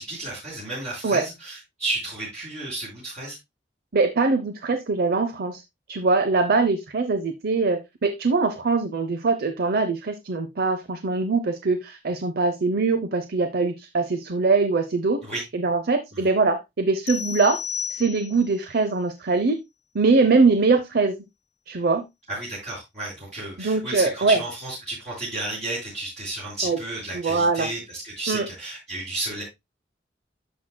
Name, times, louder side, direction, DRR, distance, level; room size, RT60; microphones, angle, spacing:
voice 1, 0.0-3.4 15.2-15.4 16.1-16.2 22.3-29.4, right 2 dB, 40° right, -7 dB, 4.5 m, -32 dB
voice 2, 3.9-5.6 5.9-15.2 15.5-17.6 17.9-19.6 19.9-21.2 21.7-22.0 23.6-24.4 26.6-26.8 27.1-27.7 28.3-28.5, right 3 dB, 60° right, 10 dB, 0.7 m, -22 dB
sound 1, 17.1-18.6, left 8 dB, 40° left, 0.4 m, -32 dB
11.5 x 6.4 x 2.2 m, 0.21 s
head